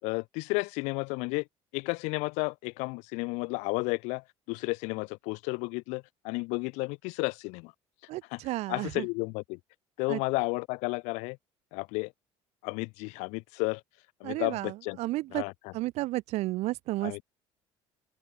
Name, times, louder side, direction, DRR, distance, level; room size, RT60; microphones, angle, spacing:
voice 1, 0.0-1.4 1.7-7.7 8.3-8.4 8.7-9.6 10.0-11.4 11.7-12.1 12.6-13.8 14.2-15.0 15.3-15.7 17.0-17.2, left 29 dB, 90° left, 5.2 m, -32 dB
voice 2, 8.1-9.0 10.1-10.2 14.2-15.4 15.7-17.2, right 18 dB, 70° right, 5.4 m, -32 dB
open air
cardioid pair, 130°, 11 cm